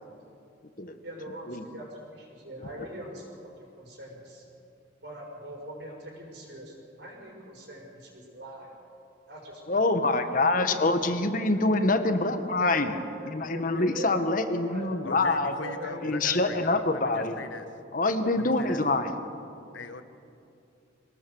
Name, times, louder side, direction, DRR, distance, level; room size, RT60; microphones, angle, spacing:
voice 1, 1.0-3.5 3.8-4.5 5.0-8.7 9.3-10.0 10.3-11.2 11.5-11.7 12.5-14.1 14.6-14.9 15.5-16.3, right 1 dB, 65° right, 0 dB, 6.1 m, -42 dB
voice 2, 9.7-13.0 13.2-15.5 16.0-17.4 17.9-19.1, left 2 dB, 45° left, 8 dB, 1.3 m, -25 dB
voice 3, 15.0-17.7 18.4-18.8 19.7-20.0, left 4 dB, 85° left, 9 dB, 1.4 m, -40 dB
24.5 x 18.5 x 7.1 m, 2.6 s
head